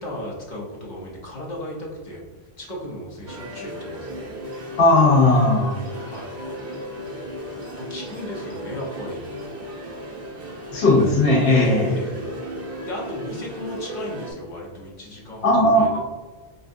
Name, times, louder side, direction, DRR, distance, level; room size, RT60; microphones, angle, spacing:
voice 1, 0.0-2.2 2.6-4.4 5.9-6.4 7.8-9.2 11.4-12.2 12.9-16.0, left 1 dB, 45° left, -3 dB, 1.0 m, -35 dB
sound 1, 3.3-14.3, equal, 45° right, 1.3 m, -35 dB
voice 2, 4.8-5.7 10.7-11.9 15.4-16.0, left 2 dB, 85° left, -5 dB, 1.2 m, -17 dB
5.2 x 2.3 x 2.5 m, 1.3 s
omnidirectional pair, 1.1 m